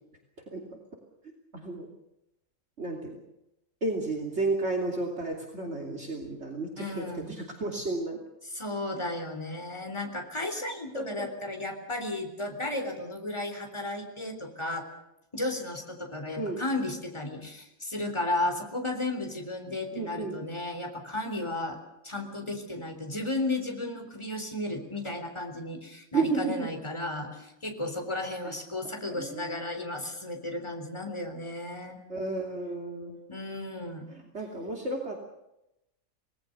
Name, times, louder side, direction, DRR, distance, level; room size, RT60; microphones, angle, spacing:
voice 1, 1.5-1.9 2.8-3.2 3.8-8.2 10.9-11.3 16.4-16.6 19.9-20.4 26.1-26.7 28.4-28.5 29.1-29.6 32.1-33.2 34.1-35.2, right 3 dB, 50° right, 1 dB, 3.2 m, -32 dB
voice 2, 6.8-7.4 8.5-14.9 15.3-21.8 22.0-32.0 33.3-34.1, left 2 dB, 20° left, 4 dB, 3.9 m, -34 dB
27.5 x 19.0 x 6.8 m, 0.88 s
omnidirectional pair, 1.5 m